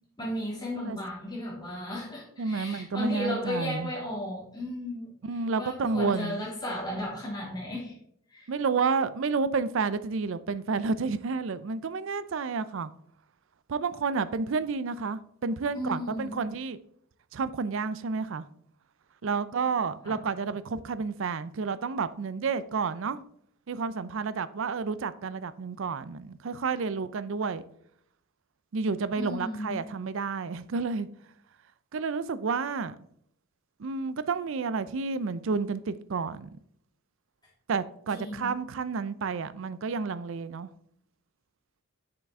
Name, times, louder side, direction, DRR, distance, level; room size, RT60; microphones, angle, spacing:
voice 1, 0.2-5.1 5.6-8.0 8.3-8.5 15.7-16.3 19.2-19.3 20.0-20.2 29.2-29.9 38.1-38.6, left 1 dB, 20° left, 2.4 m, -35 dB
voice 2, 2.4-3.9 5.3-6.4 8.5-12.9 13.7-16.8 17.3-18.4 19.2-23.2 23.7-27.6 28.7-31.1 31.9-33.0 33.8-36.6 37.7-40.7, right 4 dB, 60° right, 0.4 m, -30 dB
7.4 x 5.9 x 3.5 m
head